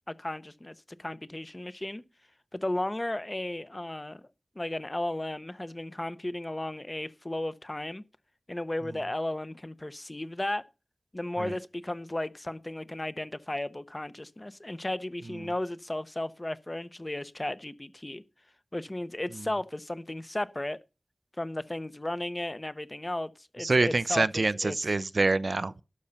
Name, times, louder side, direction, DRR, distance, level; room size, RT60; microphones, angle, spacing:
voice 1, 0.1-2.0 2.5-4.3 4.6-8.0 8.5-10.6 11.1-18.2 18.7-20.8 21.4-24.8, left 1 dB, 30° left, 0.7 m, -34 dB
voice 2, 23.6-25.8, right 3 dB, 70° right, 0.5 m, -26 dB
12.0 x 5.4 x 7.0 m
wide cardioid pair, 70°, 0 cm